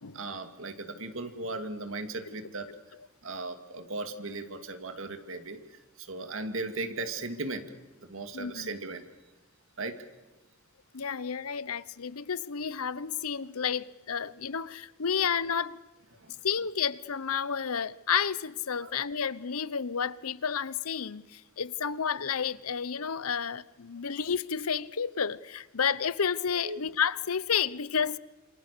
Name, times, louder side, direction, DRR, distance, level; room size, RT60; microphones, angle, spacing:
voice 1, 0.1-2.7 3.2-5.6 6.0-7.7 8.1-9.0 9.8-10.0 16.2-16.3 18.8-18.9 26.6-26.8, right 2 dB, 65° right, 2.5 m, -37 dB
voice 2, 8.3-8.7 10.9-15.8 16.4-28.2, left 7 dB, 85° left, 0.9 m, -31 dB
28.0 x 27.5 x 6.8 m
head